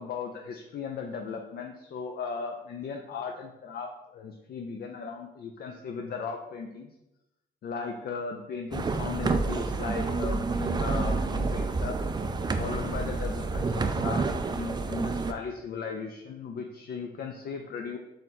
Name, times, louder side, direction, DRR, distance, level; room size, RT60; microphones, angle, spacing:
voice 1, 0.0-6.9 7.6-12.0 12.6-18.0, left 5 dB, 50° left, 3 dB, 0.5 m, -37 dB
sound 1, 8.7-15.3, right 3 dB, 20° right, 0.4 m, -29 dB
3.8 x 3.2 x 4.1 m, 0.94 s
cardioid pair, 90°, 20 cm